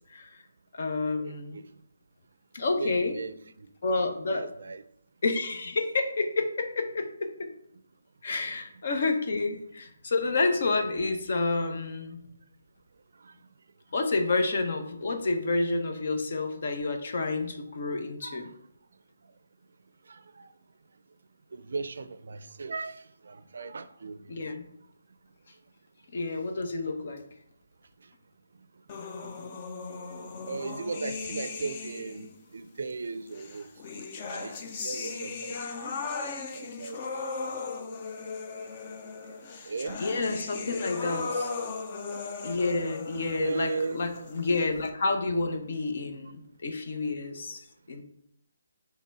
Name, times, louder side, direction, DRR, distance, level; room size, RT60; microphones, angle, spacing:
voice 1, 0.1-0.4 0.7-1.6 2.5-3.2 3.8-4.5 5.2-7.5 8.2-12.3 13.9-18.5 24.3-24.6 26.1-27.2 40.0-41.5 42.4-48.0, left 3 dB, 55° left, 0.9 m, -29 dB
voice 2, 1.2-1.6 2.8-3.7 4.3-4.8 13.2-13.3 17.2-17.3 18.2-18.4 20.1-20.5 21.5-24.3 30.4-33.7 34.3-35.6 36.5-37.0 39.7-40.0 43.4-44.0, right 4 dB, 70° right, 0.4 m, -37 dB
sound 1, 28.9-32.4 33.4-44.9, left 4 dB, 30° left, 0.6 m, -37 dB
5.8 x 3.5 x 4.7 m
hypercardioid pair, 160°, 0 cm